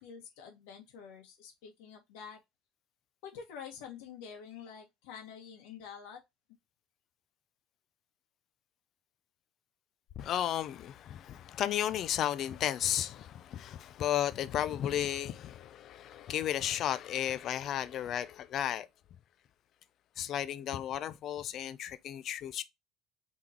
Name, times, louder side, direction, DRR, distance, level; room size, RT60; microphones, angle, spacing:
voice 1, 0.0-2.4 3.2-6.2, left 7 dB, 85° left, 1.6 m, -47 dB
voice 2, 10.2-18.9 20.2-22.6, left 11 dB, 45° left, 0.5 m, -34 dB
3.8 x 3.6 x 2.9 m
cardioid pair, 150°, 0 cm